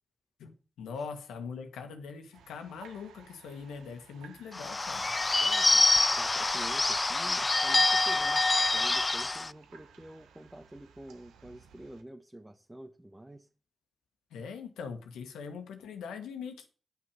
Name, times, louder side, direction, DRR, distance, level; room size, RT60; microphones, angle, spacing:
voice 1, 0.4-5.1 14.3-16.7, left 5 dB, 85° left, 1.7 m, -42 dB
sound 1, 2.3-12.0, right 7 dB, 85° right, 1.2 m, -56 dB
Bird / Bell, 4.5-9.5, left 2 dB, 30° left, 0.4 m, -26 dB
voice 2, 5.4-5.8 6.1-8.5 8.7-13.5, right 1 dB, 15° right, 1.4 m, -48 dB
10.0 x 6.0 x 7.0 m
supercardioid pair, 45°, 0 cm